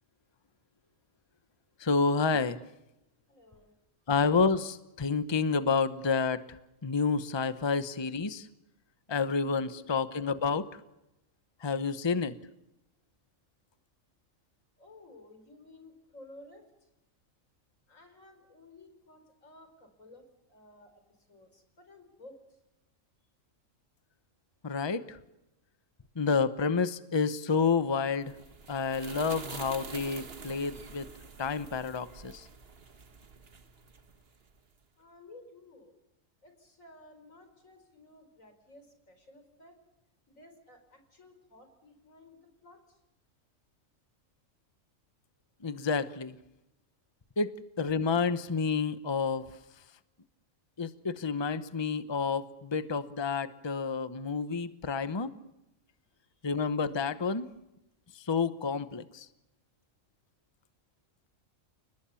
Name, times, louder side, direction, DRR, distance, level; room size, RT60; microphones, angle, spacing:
voice 1, 1.8-2.6 4.1-8.5 9.1-10.7 11.6-12.4 24.6-25.2 26.2-28.3 28.7-31.1 31.4-32.5 45.6-46.4 47.4-49.5 50.8-55.3 56.4-57.5 58.1-59.3, left 5 dB, 25° left, 13 dB, 0.9 m, -29 dB
voice 2, 3.3-3.7 9.5-9.8 14.8-16.7 17.9-20.2 20.5-21.0 21.3-22.6 35.0-35.9 36.4-39.8 40.3-43.0 56.2-56.5, left 2 dB, 90° left, 7 dB, 5.3 m, -55 dB
sound 1, 28.0-34.6, right 4 dB, 50° right, 1.5 m, -47 dB
29.5 x 19.5 x 7.1 m, 0.91 s
omnidirectional pair, 1.3 m